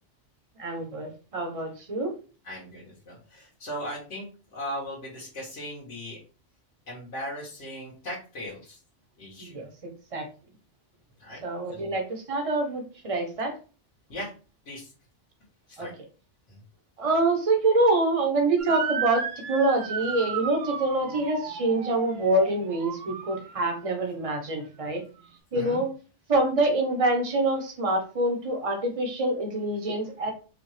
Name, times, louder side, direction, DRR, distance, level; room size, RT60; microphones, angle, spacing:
voice 1, 0.6-2.1 9.4-9.7 10.1-10.3 11.4-13.5 15.8-15.9 17.0-25.0 25.5-25.9 26.3-30.3, right 2 dB, 35° right, 3 dB, 0.9 m, -26 dB
voice 2, 2.4-6.2 6.9-8.8 9.2-9.6 11.2-11.4 11.7-12.0 14.1-14.3 14.7-14.9 15.7-15.9 16.5-16.6 25.5-25.8, equal, 90° left, -7 dB, 1.7 m, -38 dB
Motor vehicle (road) / Siren, 18.6-23.8, right 7 dB, 65° right, 0.9 m, -34 dB
5.0 x 2.3 x 3.2 m, 0.35 s
omnidirectional pair, 1.2 m